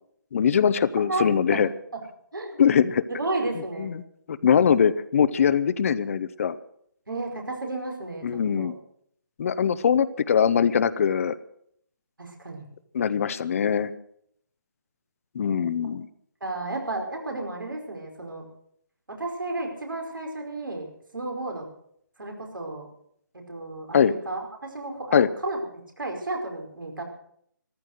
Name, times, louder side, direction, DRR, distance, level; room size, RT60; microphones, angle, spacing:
voice 1, 0.3-1.7 2.6-3.0 3.8-4.0 4.3-6.5 8.2-8.7 9.4-11.3 12.9-13.9 15.3-16.1 23.9-24.1 25.1-25.3, left 7 dB, 45° left, 15 dB, 0.7 m, -22 dB
voice 2, 3.1-3.9 7.1-8.2 8.5-8.7 12.2-12.7 16.4-18.4 19.1-20.9 21.1-21.6 22.2-22.9 23.3-25.6 26.0-27.0, right 2 dB, 85° right, 2 dB, 4.9 m, -32 dB
14.0 x 13.5 x 6.5 m, 0.68 s
figure-of-eight pair, 150°, 11 cm